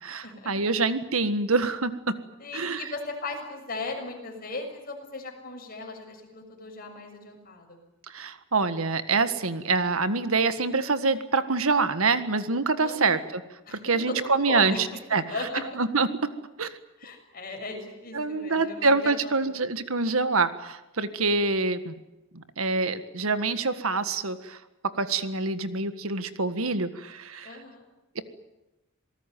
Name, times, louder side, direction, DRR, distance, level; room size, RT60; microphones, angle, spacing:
voice 1, 0.0-2.1 2.5-2.9 8.1-13.4 13.7-16.3 16.6-16.7 18.1-21.9 22.3-24.6 24.9-27.6 28.1-28.2, right 4 dB, 85° right, 11 dB, 1.7 m, -26 dB
voice 2, 2.4-7.8 12.8-13.2 13.7-14.8 15.3-15.6 17.0-19.5 27.4-27.8, left 3 dB, 45° left, 3 dB, 6.5 m, -37 dB
26.5 x 19.0 x 9.3 m, 1.0 s
head